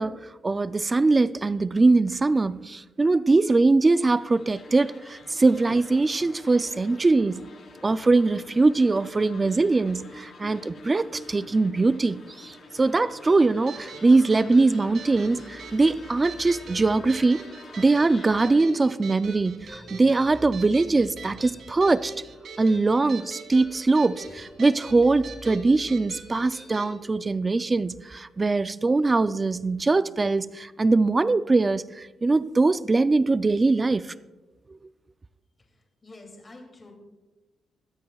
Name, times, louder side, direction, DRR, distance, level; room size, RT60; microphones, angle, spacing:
voice 1, 0.0-7.5 7.8-17.4 17.8-22.1 22.6-34.1, right 3 dB, 20° right, 0.3 m, -22 dB
sound 1, 4.0-18.6, left 2 dB, 45° left, 3.6 m, -46 dB
sound 2, 13.2-26.9, right 4 dB, 50° right, 1.8 m, -43 dB
sound 3, 14.9-26.9, left 1 dB, 5° left, 2.0 m, -50 dB
voice 2, 35.7-36.9, left 2 dB, 20° left, 2.6 m, -48 dB
22.0 x 15.0 x 2.3 m
wide cardioid pair, 175°, 0 cm